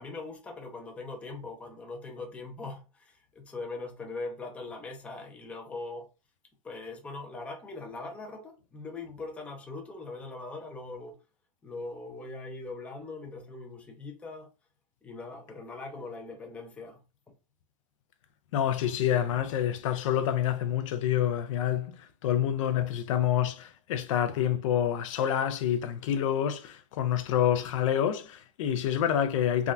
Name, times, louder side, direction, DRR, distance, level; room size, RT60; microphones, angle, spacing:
voice 1, 0.0-6.1 6.6-11.2 11.6-14.5 15.0-17.0, left 3 dB, 5° left, 0.4 m, -41 dB
voice 2, 18.5-22.0 22.2-29.7, left 10 dB, 65° left, 0.4 m, -27 dB
3.4 x 2.2 x 2.5 m
supercardioid pair, 160°, 17 cm